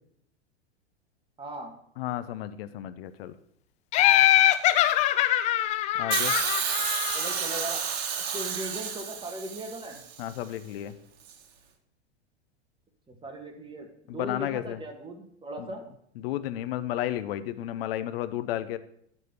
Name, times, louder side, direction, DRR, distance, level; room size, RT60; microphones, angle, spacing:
voice 1, 1.4-1.7 7.1-7.8 8.3-10.0 13.1-15.8, right 1 dB, 15° right, 3 dB, 1.7 m, -38 dB
voice 2, 2.0-3.3 6.0-6.4 10.2-10.9 14.1-14.8 15.6-15.7 16.2-18.8, left 13 dB, 55° left, 12 dB, 0.8 m, -32 dB
Laughter, 3.9-7.6, left 13 dB, 20° left, 0.3 m, -23 dB
Hiss, 6.1-10.2 11.3-11.4, right 7 dB, 60° right, 1.4 m, -31 dB
11.0 x 4.3 x 6.5 m, 0.70 s
figure-of-eight pair, 95°, 35 cm